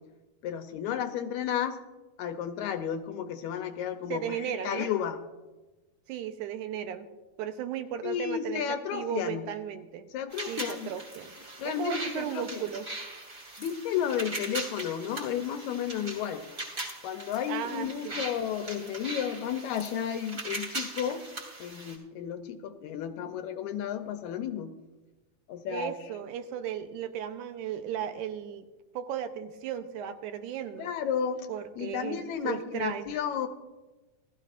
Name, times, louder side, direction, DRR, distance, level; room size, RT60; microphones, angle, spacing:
voice 1, 0.4-1.8 2.2-5.2 8.0-9.4 10.1-10.9 11.6-12.6 13.6-16.4 17.0-21.2 21.6-24.7 25.5-25.9 30.8-31.5 31.8-33.5, left 9 dB, 75° left, 8 dB, 1.9 m, -32 dB
voice 2, 4.1-4.9 6.1-7.1 7.4-10.1 10.5-11.4 11.7-12.9 17.5-18.2 25.7-28.6 28.9-30.9 31.5-32.2 32.4-33.1, right 9 dB, 80° right, 9 dB, 2.1 m, -35 dB
sound 1, 10.3-22.0, right 2 dB, 20° right, 3.0 m, -40 dB
19.0 x 13.5 x 2.5 m, 1.2 s
omnidirectional pair, 3.7 m